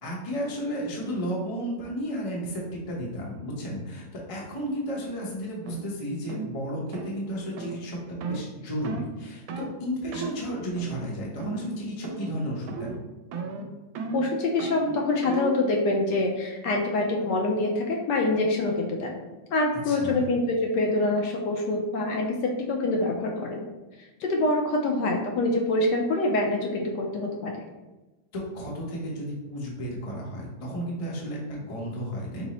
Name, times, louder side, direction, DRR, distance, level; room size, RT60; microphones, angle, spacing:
voice 1, 0.0-13.0 19.8-20.3 28.3-32.5, equal, 40° left, -3 dB, 0.4 m, -33 dB
sound 1, 5.7-5.8 6.3-6.5 6.9-7.1 7.6-7.8 8.2-8.4 8.8-9.1 9.5-9.7 10.1-10.4 10.8-11.1 11.4-11.8 12.0-12.4 12.7-13.0 13.3-15.6, right 4 dB, 80° right, 1.3 m, -34 dB
voice 2, 14.1-19.2 19.5-23.6 24.2-27.6, left 2 dB, 70° left, 1 dB, 1.1 m, -25 dB
5.3 x 2.0 x 4.1 m, 1.1 s
omnidirectional pair, 2.1 m